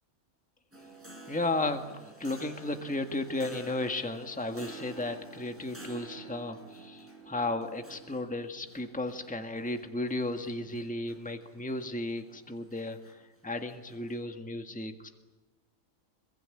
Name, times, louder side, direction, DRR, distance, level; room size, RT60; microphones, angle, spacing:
sound 1, 0.7-14.2, right 2 dB, 10° right, 5.7 m, -51 dB
voice 1, 1.3-15.1, left 2 dB, 5° left, 6 dB, 1.7 m, -34 dB
26.5 x 22.5 x 9.9 m, 1.1 s
omnidirectional pair, 1.4 m